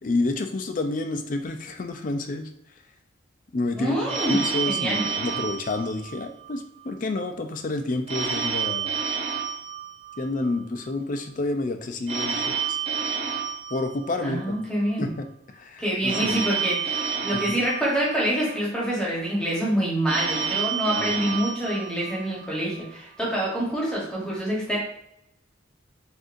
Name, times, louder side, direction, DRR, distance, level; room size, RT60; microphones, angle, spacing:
voice 1, 0.0-2.5 3.5-4.0 4.3-8.9 10.2-12.8 13.2-13.3 13.7-14.6 15.0-16.4 17.3-17.6 20.9-21.4, left 2 dB, 40° left, 7 dB, 0.4 m, -29 dB
voice 2, 3.7-4.4 4.7-5.0 14.2-15.1 15.8-24.8, right 1 dB, 5° left, -6 dB, 1.1 m, -26 dB
Telephone, 4.1-6.6 8.1-10.6 12.1-14.6 16.1-18.6 20.1-22.6, right 6 dB, 35° right, 0.7 m, -29 dB
6.2 x 2.6 x 2.6 m, 0.78 s
head